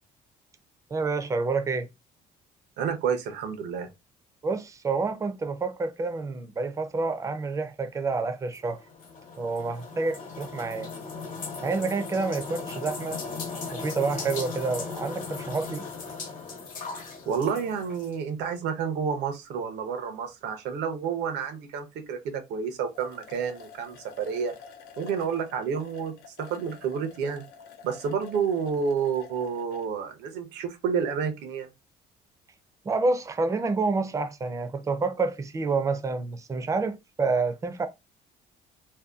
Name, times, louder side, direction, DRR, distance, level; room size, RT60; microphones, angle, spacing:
voice 1, 0.9-1.9 4.4-8.8 9.4-10.9 11.6-13.2 13.7-15.8 32.9-37.9, right 3 dB, 20° right, 0.4 m, -28 dB
voice 2, 2.8-3.9 17.3-24.5 25.0-27.4 27.8-31.7, right 6 dB, 85° right, 0.7 m, -30 dB
sound 1, 8.5-18.2, left 4 dB, 50° left, 1.0 m, -37 dB
sound 2, 22.5-22.6 22.9-29.9, left 6 dB, 75° left, 0.6 m, -49 dB
2.7 x 2.2 x 2.3 m
cardioid pair, 110°, 17 cm